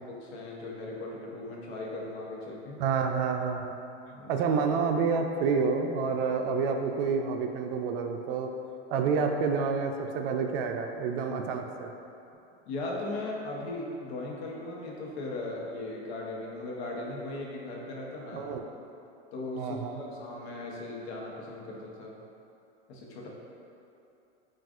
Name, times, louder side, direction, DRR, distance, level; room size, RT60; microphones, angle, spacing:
voice 1, 0.1-2.8 4.1-4.3 12.7-18.5 19.3-22.1 22.9-23.3, left 2 dB, 70° left, -2 dB, 0.9 m, -38 dB
voice 2, 2.8-3.8 4.3-8.5 8.9-11.9 18.3-18.6 19.6-20.0, right 5 dB, 60° right, 4 dB, 0.4 m, -28 dB
5.8 x 2.5 x 2.4 m, 2.8 s
hypercardioid pair, 110°, 33 cm